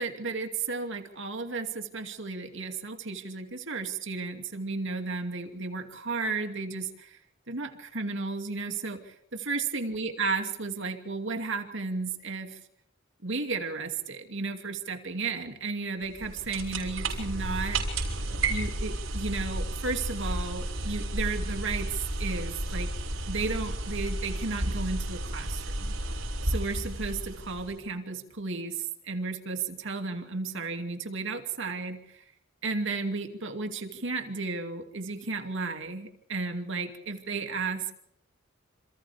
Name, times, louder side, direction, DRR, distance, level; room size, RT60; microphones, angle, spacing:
voice 1, 0.0-7.2 7.5-12.6 13.2-17.8 18.5-22.9 23.3-25.9 26.4-32.2 32.6-38.0, right 4 dB, 65° right, 5 dB, 2.6 m, -33 dB
sound 1, 16.1-27.9, right 2 dB, 80° right, 6.0 m, -32 dB
28.0 x 27.5 x 3.5 m, 0.73 s
head